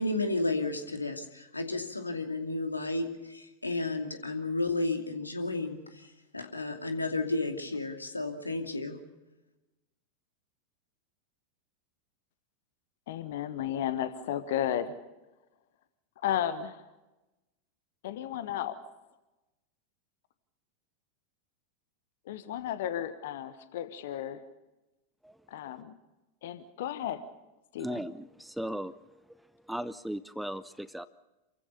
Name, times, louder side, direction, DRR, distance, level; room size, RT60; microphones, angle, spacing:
voice 1, 0.0-9.0, left 2 dB, 80° left, 6 dB, 2.6 m, -32 dB
voice 2, 13.1-14.9 16.2-16.8 18.0-18.8 22.3-24.4 25.5-25.9 26.4-27.2 27.7-28.0, left 10 dB, 55° left, 12 dB, 1.4 m, -33 dB
voice 3, 27.8-29.2 29.7-31.1, equal, ahead, 16 dB, 0.7 m, -37 dB
28.0 x 15.5 x 6.9 m, 1.0 s
figure-of-eight pair, 90°, 0 cm